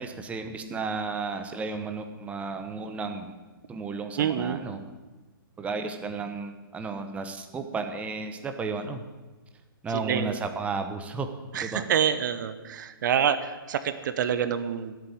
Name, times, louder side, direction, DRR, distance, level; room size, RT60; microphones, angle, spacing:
voice 1, 0.0-3.3 3.7-4.8 5.6-9.0 9.8-11.3 11.6-11.9, right 4 dB, 10° right, 6 dB, 1.0 m, -33 dB
voice 2, 4.2-4.6 10.0-10.3 11.5-14.9, right 8 dB, 55° right, 12 dB, 1.0 m, -27 dB
14.5 x 8.2 x 8.5 m, 1.2 s
hypercardioid pair, 140°, 12 cm